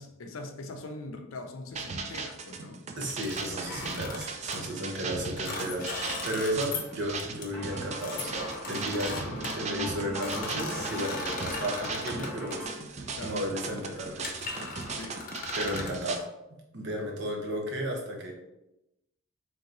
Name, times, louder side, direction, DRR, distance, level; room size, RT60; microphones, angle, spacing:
voice 1, 0.0-2.8 13.1-13.5 14.9-15.2, left 2 dB, 85° left, 5 dB, 0.5 m, -42 dB
sound 1, 1.7-16.2, right 4 dB, 35° right, 0.4 m, -38 dB
voice 2, 3.0-5.9 6.2-14.7 15.5-16.3 16.7-18.3, equal, 60° right, 1 dB, 0.9 m, -34 dB
sound 2, 3.1-4.6 5.2-6.9 7.2-7.5 8.0-12.5 13.3-13.5 13.9-14.0 14.2-16.0, left 3 dB, 45° left, 0.7 m, -38 dB
sound 3, 7.5-12.7, left 1 dB, 10° left, 1.2 m, -41 dB
3.3 x 2.9 x 3.8 m, 0.91 s
head